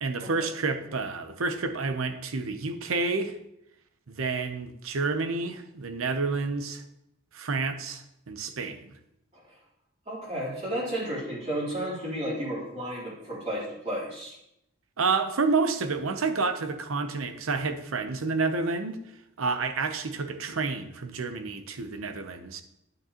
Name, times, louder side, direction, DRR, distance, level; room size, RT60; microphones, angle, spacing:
voice 1, 0.0-3.4 4.1-6.8 7.3-8.9 15.0-19.0 19.4-22.6, right 4 dB, 85° right, 0.7 m, -29 dB
voice 2, 10.1-14.3, right 1 dB, 35° right, 3.4 m, -32 dB
9.3 x 8.9 x 2.9 m
head